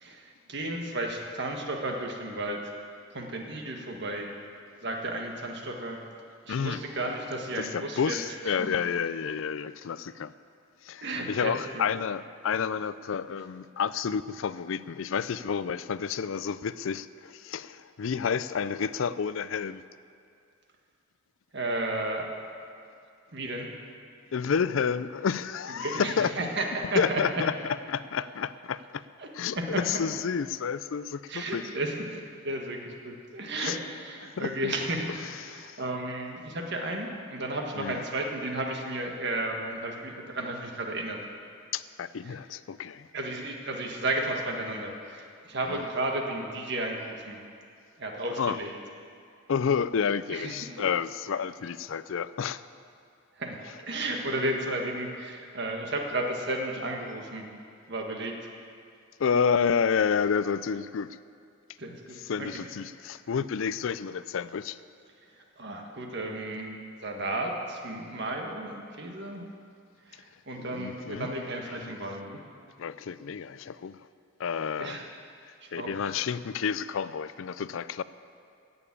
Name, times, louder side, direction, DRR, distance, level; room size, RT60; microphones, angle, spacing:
voice 1, 0.0-2.7 3.1-4.3 4.8-6.0 6.5-8.2 8.6-8.7 11.0-11.8 21.5-22.3 23.3-23.7 25.8-27.4 29.2-29.3 29.5-30.0 31.3-32.1 32.4-35.1 35.5-41.2 42.3-42.4 43.1-47.4 48.0-48.7 50.3-50.5 53.4-57.5 57.9-58.4 61.8-62.6 65.6-69.5 70.1-72.4 74.8-75.1 75.6-76.1, right 1 dB, 55° right, 2 dB, 1.6 m, -33 dB
voice 2, 6.5-6.8 7.6-10.3 10.8-19.8 24.3-26.3 27.0-29.0 29.3-31.7 33.6-33.8 34.4-34.7 35.4-35.8 37.8-38.0 41.7-43.1 45.7-45.9 48.4-48.6 49.5-52.6 59.2-61.1 62.2-64.8 70.6-71.3 71.7-71.9 72.8-74.0 74.4-75.0 75.7-78.0, left 6 dB, 65° left, 15 dB, 0.4 m, -30 dB
15.5 x 7.1 x 8.6 m, 2.4 s
head